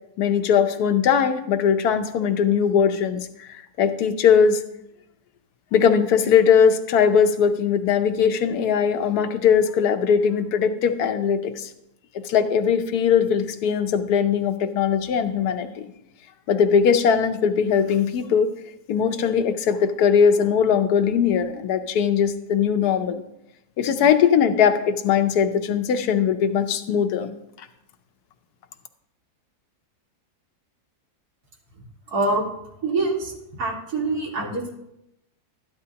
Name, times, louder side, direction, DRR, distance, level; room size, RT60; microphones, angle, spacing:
voice 1, 0.2-4.6 5.7-11.7 12.1-15.8 16.5-18.5 18.9-23.2 23.8-27.3, left 7 dB, 75° left, 8 dB, 1.3 m, -20 dB
voice 2, 32.1-32.4 32.8-33.3 33.6-34.7, right 2 dB, 75° right, -2 dB, 2.4 m, -24 dB
13.0 x 10.5 x 2.9 m, 0.83 s
omnidirectional pair, 1.7 m